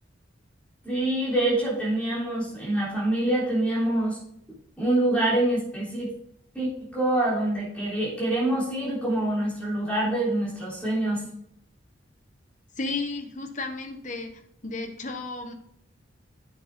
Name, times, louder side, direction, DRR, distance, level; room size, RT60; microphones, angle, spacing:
voice 1, 0.8-4.2 4.8-6.1 6.5-11.2, right 1 dB, 5° left, -6 dB, 3.4 m, -25 dB
voice 2, 12.8-15.5, left 3 dB, 40° left, 5 dB, 1.1 m, -33 dB
8.4 x 6.7 x 3.7 m, 0.71 s
head